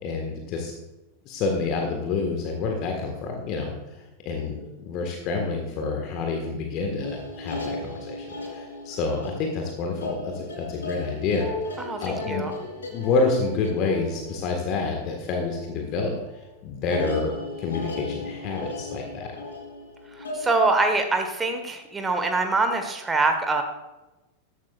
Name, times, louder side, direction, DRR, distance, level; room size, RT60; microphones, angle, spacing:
voice 1, 0.0-0.7 1.2-3.7 4.2-8.2 8.5-11.5 12.0-12.5 12.9-16.1 16.6-19.3, left 4 dB, 40° left, 2 dB, 1.7 m, -28 dB
sound 1, 7.0-15.8 16.1-16.5 16.9-20.5, left 2 dB, 70° left, 4.0 m, -36 dB
voice 2, 11.8-12.5 20.1-23.6, right 3 dB, 15° right, 6 dB, 1.4 m, -24 dB
14.0 x 11.5 x 2.5 m, 1.1 s
figure-of-eight pair, 90°, 0 cm